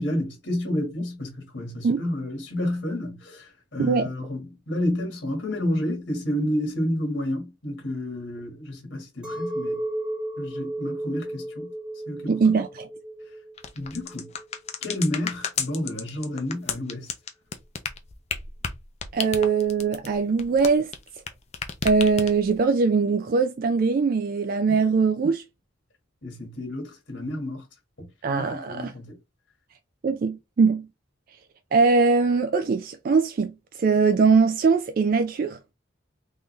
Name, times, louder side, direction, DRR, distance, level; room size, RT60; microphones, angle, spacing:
voice 1, 0.0-9.8 10.4-11.7 12.1-12.5 13.7-14.3 14.8-17.1 24.7-24.8 26.2-27.7 28.3-29.1, left 1 dB, 65° left, 1.7 m, -30 dB
Chink clink, 9.2-14.7, right 1 dB, 5° right, 0.7 m, -34 dB
voice 2, 12.3-12.9 19.1-20.9 21.8-25.4 28.2-28.9 30.0-30.9 31.7-35.6, right 4 dB, 45° right, 0.3 m, -21 dB
sound 1, 13.6-21.3 21.5-22.6, left 6 dB, 30° left, 0.5 m, -32 dB
3.7 x 2.7 x 3.1 m
head